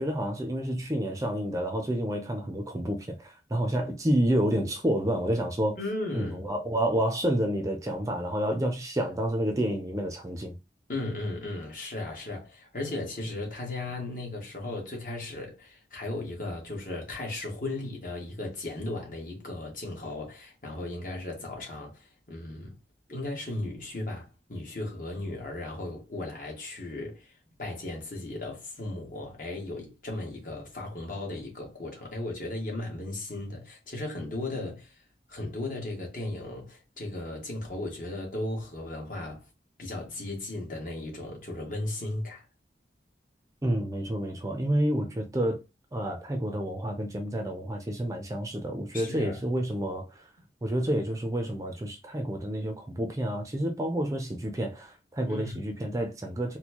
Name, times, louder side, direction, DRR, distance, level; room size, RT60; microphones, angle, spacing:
voice 1, 0.0-5.8 6.1-10.5 43.6-45.6 45.9-50.2 50.6-56.6, right 1 dB, 20° right, 0.5 m, -29 dB
voice 2, 5.8-6.5 10.9-22.8 23.1-27.3 27.6-34.9 35.3-39.5 39.8-42.5 48.9-49.4 55.2-55.6, left 2 dB, 50° left, 1.4 m, -36 dB
4.3 x 2.2 x 2.9 m
head